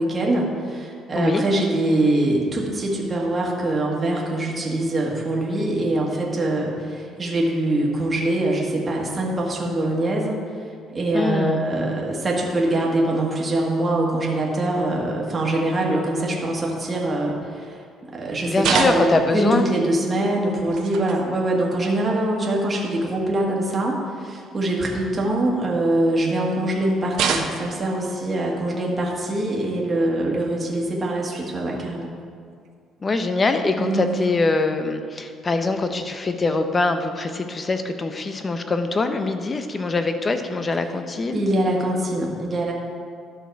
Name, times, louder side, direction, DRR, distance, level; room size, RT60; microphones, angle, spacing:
voice 1, 0.0-10.4 10.9-17.8 18.1-32.1 33.8-34.1 41.3-42.7, right 1 dB, 25° right, -2 dB, 1.6 m, -23 dB
voice 2, 11.1-11.6 18.5-19.7 33.0-41.4, left 3 dB, 25° left, 8 dB, 0.7 m, -23 dB
sound 1, 18.6-19.3 20.6-21.2 22.2-22.3 22.8-23.0 25.1-25.9 27.1-27.8 29.6-29.8 31.4-31.5 32.6-32.7 33.9-34.3, right 6 dB, 70° right, 0.8 m, -27 dB
12.0 x 6.3 x 4.6 m, 2.2 s
cardioid pair, 125°, 0 cm